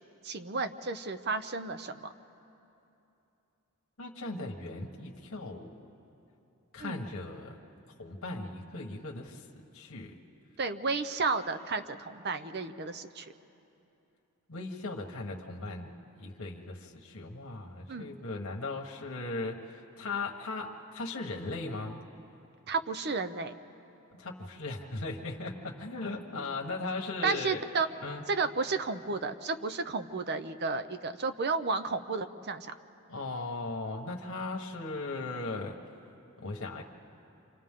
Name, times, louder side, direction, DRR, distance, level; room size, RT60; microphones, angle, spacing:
voice 1, 0.2-2.1 6.8-7.0 10.6-13.3 17.9-18.1 22.7-23.5 27.2-27.9 28.3-32.7, right 4 dB, 50° right, 11 dB, 0.7 m, -32 dB
voice 2, 4.0-5.8 6.7-7.6 8.0-9.5 9.7-10.1 14.5-15.9 16.2-22.0 24.2-27.6 28.0-28.2 33.1-35.7 36.4-36.8, left 3 dB, 70° left, 0 dB, 1.5 m, -38 dB
29.0 x 26.5 x 3.8 m, 2.9 s
head